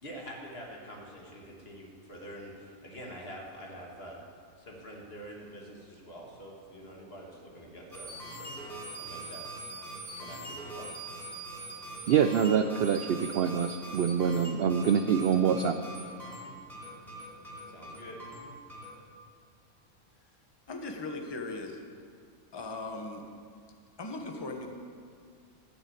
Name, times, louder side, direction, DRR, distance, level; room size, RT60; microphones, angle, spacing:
voice 1, 0.0-4.2 4.6-9.4 10.1-10.9 17.7-18.2, equal, 45° left, -1 dB, 2.0 m, -46 dB
sound 1, 7.9-19.0, right 2 dB, ahead, 3.5 m, -43 dB
voice 2, 12.1-15.8, right 7 dB, 70° right, 8 dB, 0.5 m, -25 dB
voice 3, 20.7-21.8 22.5-23.2 24.0-24.7, left 2 dB, 20° left, 3 dB, 0.9 m, -38 dB
12.5 x 6.4 x 8.7 m, 2.2 s
omnidirectional pair, 1.5 m